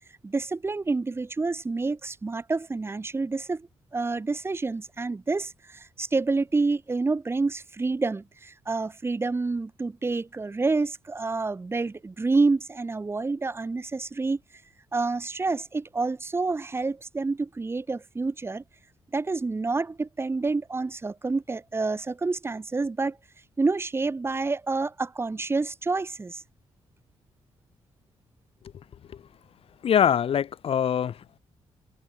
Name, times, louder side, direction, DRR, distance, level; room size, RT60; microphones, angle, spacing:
voice 1, 0.2-14.4 14.9-18.6 19.1-23.2 23.6-26.4, right 3 dB, 20° right, 4.3 m, -28 dB
voice 2, 29.8-31.4, left 8 dB, 60° left, 3.1 m, -24 dB
cardioid pair, 135°, 11 cm